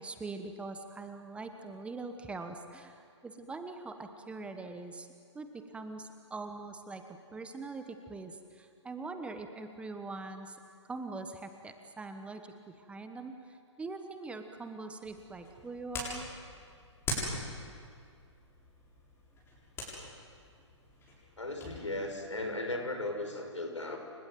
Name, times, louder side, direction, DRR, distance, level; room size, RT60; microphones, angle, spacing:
voice 1, 0.0-5.1 5.3-7.1 7.3-10.6 10.9-16.2, right 3 dB, 5° right, 7 dB, 1.2 m, -43 dB
sound 1, 15.0-21.8, left 1 dB, 15° left, 7.3 m, -42 dB
voice 2, 21.4-24.0, left 2 dB, 80° left, 4 dB, 5.7 m, -36 dB
29.0 x 25.5 x 7.7 m, 2.2 s
figure-of-eight pair, 125°, 16 cm